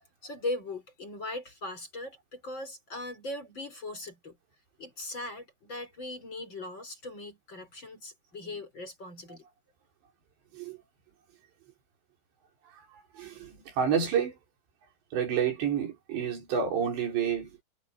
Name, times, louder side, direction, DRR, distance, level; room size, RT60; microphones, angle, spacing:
voice 1, 0.2-4.4 4.8-9.5, left 2 dB, 25° left, 5.5 m, -39 dB
voice 2, 12.9-14.4 15.1-17.6, right 7 dB, 85° right, 7.4 m, -29 dB
omnidirectional pair, 4.9 m